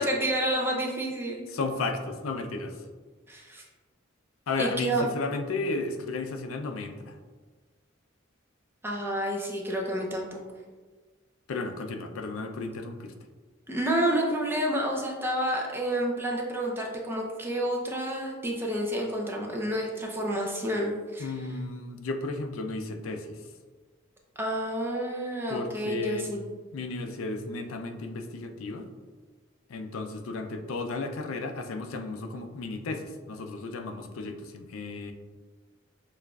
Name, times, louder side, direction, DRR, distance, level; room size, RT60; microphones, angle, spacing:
voice 1, 0.0-1.4 3.3-3.6 4.6-5.1 8.8-10.4 13.7-21.3 24.4-26.4, right 1 dB, 10° right, -1 dB, 0.5 m, -29 dB
voice 2, 1.5-2.8 4.5-7.1 11.5-13.1 21.2-23.4 25.5-26.3 26.7-28.9 29.7-35.1, left 3 dB, 80° left, 6 dB, 0.4 m, -34 dB
6.5 x 2.4 x 2.3 m, 1.4 s
head